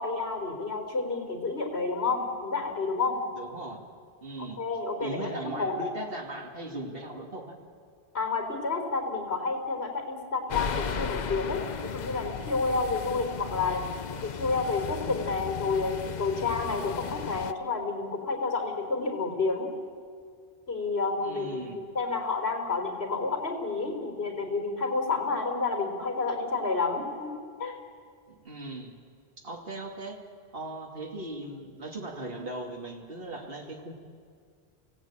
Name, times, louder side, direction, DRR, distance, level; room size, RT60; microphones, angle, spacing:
voice 1, 0.0-3.2 4.4-5.7 8.1-13.8 14.1-19.7 20.7-27.8, left 4 dB, 75° left, 2 dB, 4.3 m, -30 dB
voice 2, 3.4-3.9 4.2-4.6 5.0-7.6 21.2-21.8 28.3-28.9 29.4-30.2 30.5-33.9, right 1 dB, 60° right, 0 dB, 2.9 m, -38 dB
sound 1, 10.5-17.5, left 6 dB, 50° left, 0.8 m, -36 dB
30.0 x 17.5 x 8.9 m, 2.1 s
omnidirectional pair, 1.1 m